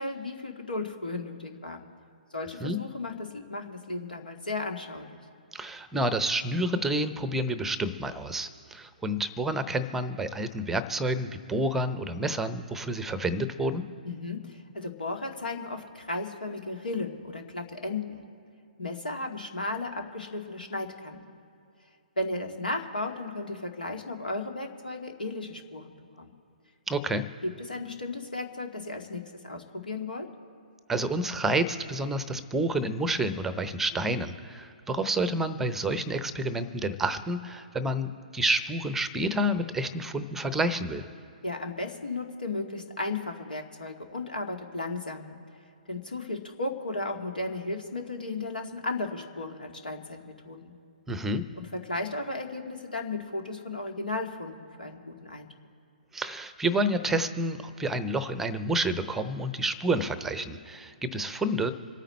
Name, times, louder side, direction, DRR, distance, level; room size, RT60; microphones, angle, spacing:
voice 1, 0.0-1.9 2.3-5.2 14.0-18.2 18.8-21.3 22.2-25.9 26.2-26.3 27.7-30.3 41.4-45.4 45.9-50.7 51.6-55.5, left 2 dB, 75° left, 3 dB, 2.1 m, -35 dB
voice 2, 5.5-13.8 26.9-27.2 30.9-41.1 51.1-51.4 56.1-61.7, right 1 dB, 5° right, 12 dB, 0.7 m, -29 dB
27.0 x 9.1 x 4.3 m, 2.5 s
figure-of-eight pair, 125°, 5 cm